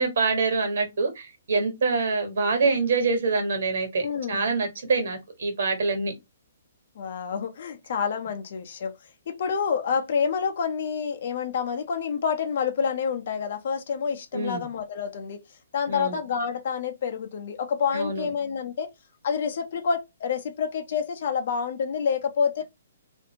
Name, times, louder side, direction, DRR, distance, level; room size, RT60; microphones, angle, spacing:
voice 1, 0.0-6.1 14.3-14.7 15.9-16.2 17.9-18.3, right 4 dB, 60° right, 1.3 m, -25 dB
voice 2, 4.0-4.5 7.0-8.9 9.3-15.4 15.7-18.9 19.2-22.6, left 6 dB, 45° left, 0.6 m, -28 dB
2.5 x 2.5 x 2.8 m
hypercardioid pair, 175°, 0 cm